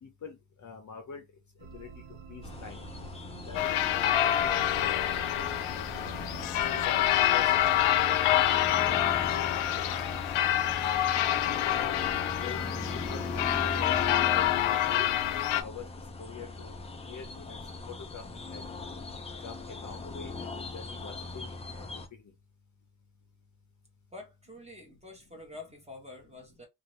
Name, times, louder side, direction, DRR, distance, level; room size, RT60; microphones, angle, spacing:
voice 1, 0.0-1.2 1.6-1.9 2.3-2.8 3.5-4.9 5.3-5.5 5.7-6.2 6.8-7.6 7.9-8.2 8.8-10.5 10.8-11.1 11.7-12.6 12.9-13.9 14.3-15.1 15.6-15.9 16.2-16.8 17.0-17.6 17.9-18.2 18.5-18.6 19.4-21.5 21.8-22.0 25.3-25.4, left 6 dB, 35° left, 0.8 m, -45 dB
sound 1, 1.6-15.3, right 5 dB, 70° right, 1.1 m, -48 dB
sound 2, 2.4-22.1, left 3 dB, 15° left, 0.3 m, -40 dB
sound 3, 3.5-15.6, left 12 dB, 90° left, 0.5 m, -27 dB
voice 2, 24.1-26.7, left 2 dB, 15° right, 1.1 m, -47 dB
2.6 x 2.6 x 3.0 m
cardioid pair, 145°, 49 cm